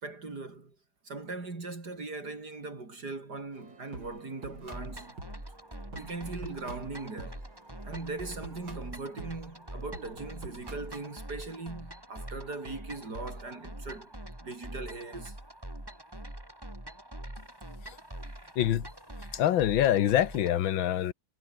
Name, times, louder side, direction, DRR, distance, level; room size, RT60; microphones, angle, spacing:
voice 1, 0.0-0.8 1.0-5.2 5.9-7.4 7.8-14.1 14.4-15.4, right 3 dB, 50° right, 4.4 m, -40 dB
sound 1, 3.5-11.1, right 3 dB, 70° right, 6.4 m, -48 dB
sound 2, 4.7-20.6, right 1 dB, 10° right, 3.7 m, -44 dB
voice 2, 18.6-18.9 19.3-21.1, left 11 dB, 75° left, 1.7 m, -25 dB
omnidirectional pair, 2.2 m